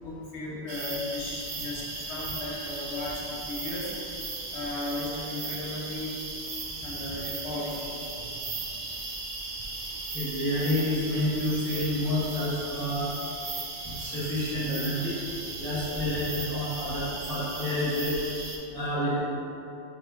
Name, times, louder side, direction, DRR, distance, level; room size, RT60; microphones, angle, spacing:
voice 1, 0.0-3.9 4.5-6.1 6.8-7.8, left 2 dB, 90° left, -5 dB, 1.0 m, -35 dB
sound 1, 0.7-18.6, right 3 dB, 55° right, 0.6 m, -37 dB
voice 2, 10.1-13.1 13.9-15.1 15.6-18.1 18.7-19.2, left 1 dB, 35° left, -9 dB, 1.4 m, -29 dB
4.8 x 3.5 x 2.4 m, 2.8 s
omnidirectional pair, 1.1 m